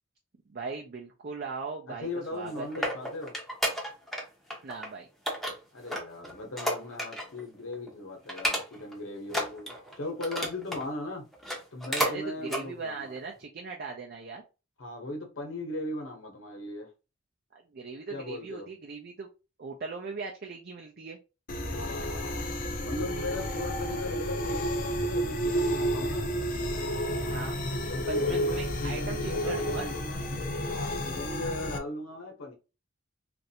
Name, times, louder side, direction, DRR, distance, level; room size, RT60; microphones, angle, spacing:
voice 1, 0.5-3.0 4.6-5.1 12.0-14.4 17.5-19.3 19.6-21.2 27.3-27.6 28.0-29.9 30.3-30.4, right 4 dB, 50° right, 0.5 m, -39 dB
voice 2, 1.9-3.3 5.7-11.3 11.7-13.1 14.8-16.9 18.1-18.7 21.6-22.3 22.8-26.3 27.8-30.3 30.7-32.6, left 2 dB, 75° left, 1.0 m, -38 dB
sound 1, 2.3-4.2 4.5-4.9 5.3-7.4 7.7-7.9 8.3-8.9 9.3-10.9 11.3-12.2 12.5-12.6 13.2-13.3, equal, ahead, 0.6 m, -32 dB
sound 2, 21.5-31.8, equal, 40° left, 0.5 m, -31 dB
3.1 x 2.5 x 2.8 m
head